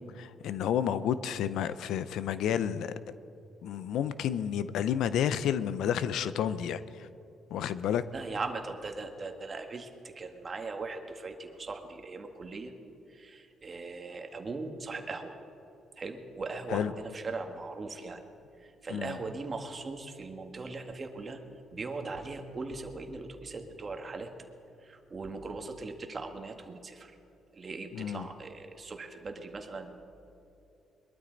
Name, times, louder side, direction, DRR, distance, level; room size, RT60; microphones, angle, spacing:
voice 1, 0.2-2.9 3.6-7.1 7.5-8.0 16.7-16.9 18.9-19.2 27.9-28.3, left 9 dB, 80° left, 14 dB, 0.5 m, -30 dB
voice 2, 8.1-9.9 10.1-12.7 13.1-15.4 16.0-18.2 18.6-21.4 21.7-24.3 24.8-27.1 27.5-30.0, right 3 dB, 35° right, 5 dB, 1.7 m, -39 dB
22.0 x 12.5 x 4.0 m, 2.9 s
cardioid pair, 90°, 0 cm